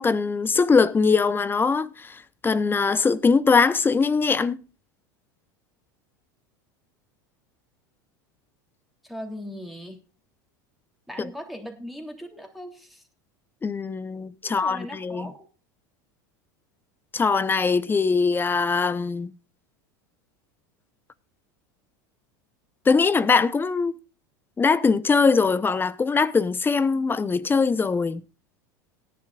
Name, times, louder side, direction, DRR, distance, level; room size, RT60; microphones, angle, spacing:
voice 1, 0.0-4.6 13.6-14.8 15.0-15.3 17.1-19.3 22.9-23.9 24.6-28.2, left 4 dB, 20° left, 0.9 m, -21 dB
voice 2, 9.0-10.0 11.1-13.0 14.4-15.5, equal, ahead, 3.2 m, -39 dB
18.0 x 10.5 x 2.5 m
hypercardioid pair, 100°, 11 cm